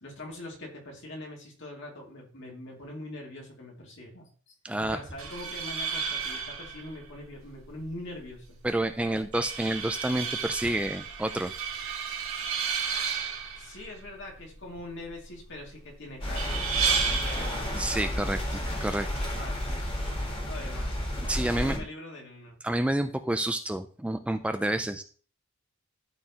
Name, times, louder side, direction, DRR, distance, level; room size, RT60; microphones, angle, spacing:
voice 1, 0.0-8.6 9.0-9.2 13.6-18.4 19.3-20.0 20.4-21.1 21.5-22.6, left 1 dB, 60° left, -1 dB, 2.4 m, -43 dB
voice 2, 4.6-5.0 8.6-11.5 17.8-19.1 21.3-21.8 22.6-25.0, right 1 dB, 5° right, 8 dB, 0.3 m, -29 dB
sound 1, 5.1-20.1, right 6 dB, 75° right, 2.0 m, -34 dB
sound 2, 16.2-21.8, equal, 25° left, 1.8 m, -32 dB
12.5 x 4.5 x 2.8 m, 0.41 s
head